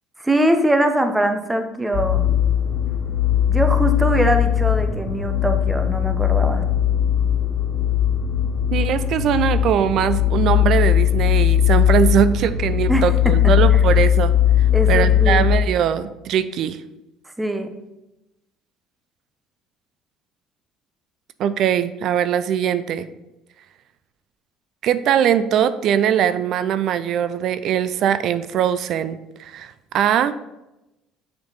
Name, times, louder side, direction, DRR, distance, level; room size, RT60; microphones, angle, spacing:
voice 1, 0.2-2.2 3.5-6.6 12.9-13.8 14.7-15.5 17.4-17.7, right 1 dB, 10° right, 6 dB, 0.8 m, -22 dB
sound 1, 1.9-15.5, left 10 dB, 30° left, 2.4 m, -19 dB
voice 2, 8.7-14.3 14.9-16.8 21.4-23.1 24.8-30.3, right 9 dB, 60° right, 13 dB, 0.4 m, -21 dB
6.6 x 4.5 x 3.9 m, 0.96 s
supercardioid pair, 80°, 0 cm